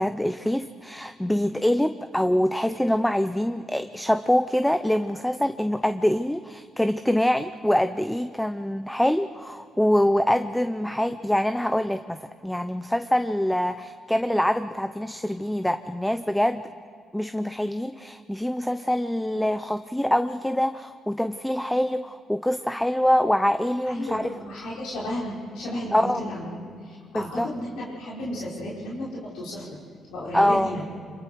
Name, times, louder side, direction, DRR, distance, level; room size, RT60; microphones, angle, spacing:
voice 1, 0.0-12.2 12.4-16.6 17.1-24.3 25.9-26.2 27.1-27.5 30.3-30.7, left 1 dB, 5° left, 10 dB, 0.6 m, -24 dB
voice 2, 23.9-29.8 30.1-30.8, left 1 dB, 90° left, -6 dB, 4.6 m, -33 dB
26.5 x 22.5 x 4.6 m, 2.3 s
cardioid pair, 90°, 0 cm